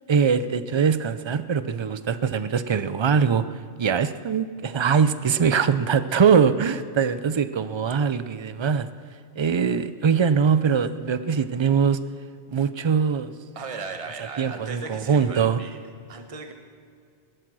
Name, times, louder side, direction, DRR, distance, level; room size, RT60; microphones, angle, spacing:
voice 1, 0.1-3.4 3.8-8.9 9.4-12.0 12.5-13.3 14.4-15.6, right 6 dB, 50° right, 13 dB, 0.3 m, -22 dB
voice 2, 13.5-15.8 16.1-16.5, right 4 dB, 30° right, 5 dB, 1.1 m, -36 dB
17.5 x 12.0 x 6.2 m, 2.2 s
omnidirectional pair, 1.2 m